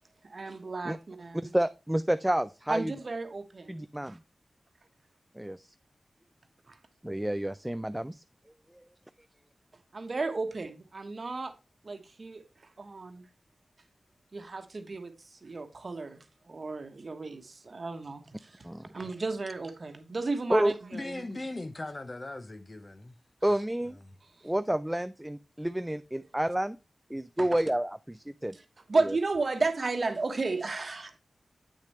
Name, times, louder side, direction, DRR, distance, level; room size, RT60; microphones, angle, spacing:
voice 1, 0.2-1.5 2.7-4.2 6.7-6.8 9.9-11.5 11.8-12.4 12.8-13.3 14.3-18.6 18.9-21.2 27.4-27.6 28.5-28.6 28.9-31.2, right 3 dB, 50° right, 1.1 m, -33 dB
voice 2, 1.4-2.9 3.7-4.2 5.4-5.7 7.0-8.2 18.6-18.8 20.5-20.7 23.4-24.0 24.4-26.8 27.1-28.5 29.0-29.1, right 1 dB, 10° right, 0.3 m, -29 dB
voice 3, 20.9-23.2 24.0-24.2, left 2 dB, 35° left, 0.8 m, -39 dB
8.3 x 6.4 x 3.1 m
wide cardioid pair, 75°, 0 cm